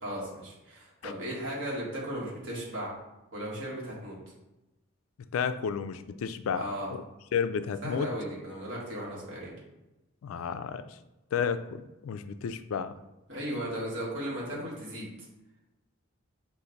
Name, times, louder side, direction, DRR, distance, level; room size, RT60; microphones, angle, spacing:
voice 1, 0.0-2.9 3.3-4.2 6.5-6.9 7.8-9.5 13.3-15.1, equal, 60° right, -5 dB, 1.5 m, -36 dB
voice 2, 5.3-6.6 6.9-7.0 7.3-8.1 10.2-10.8 11.3-12.9 14.5-14.7, left 6 dB, 75° left, 11 dB, 0.3 m, -32 dB
5.1 x 2.5 x 3.9 m, 0.99 s
head